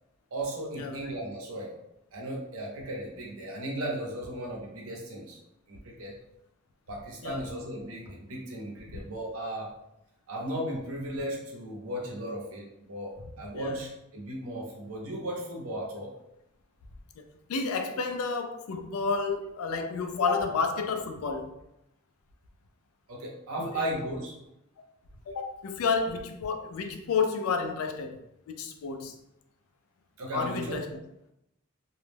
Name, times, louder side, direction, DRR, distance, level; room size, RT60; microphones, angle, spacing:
voice 1, 0.3-1.7 2.1-5.4 5.7-6.1 6.9-9.7 10.3-16.1 19.7-19.8 23.1-24.4 30.2-30.8, right 1 dB, 80° right, 0.7 m, -36 dB
voice 2, 17.5-21.5 23.6-23.9 25.3-28.2 28.5-29.2 30.3-31.0, left 4 dB, 90° left, 0.4 m, -30 dB
2.3 x 2.0 x 3.2 m
head